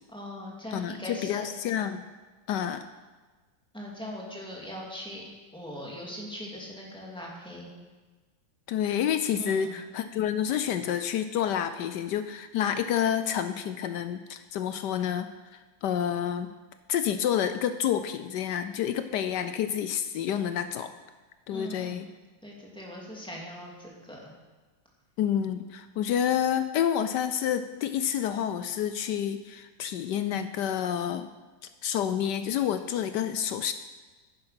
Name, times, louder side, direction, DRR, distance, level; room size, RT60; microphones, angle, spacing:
voice 1, 0.1-1.4 3.7-5.2 5.5-7.7 9.4-9.8 21.5-22.0 22.4-24.2, left 1 dB, ahead, -3 dB, 2.6 m, -40 dB
voice 2, 0.7-2.0 2.5-2.8 8.7-16.5 16.9-20.9 21.5-22.1 25.2-31.3 31.6-33.7, left 9 dB, 70° left, 11 dB, 1.1 m, -29 dB
10.5 x 9.7 x 5.8 m, 1.3 s
omnidirectional pair, 2.1 m